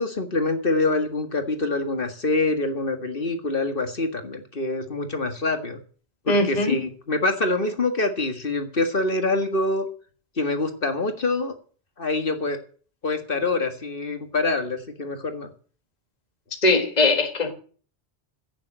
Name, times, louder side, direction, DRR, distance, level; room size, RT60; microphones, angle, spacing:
voice 1, 0.0-5.8 6.3-9.9 10.4-11.6 12.0-12.6 13.0-15.5, left 2 dB, 55° left, 7 dB, 1.9 m, -25 dB
voice 2, 6.3-6.7 16.6-17.5, left 2 dB, 40° left, 5 dB, 1.7 m, -20 dB
16.0 x 7.2 x 7.8 m, 0.42 s
omnidirectional pair, 1.1 m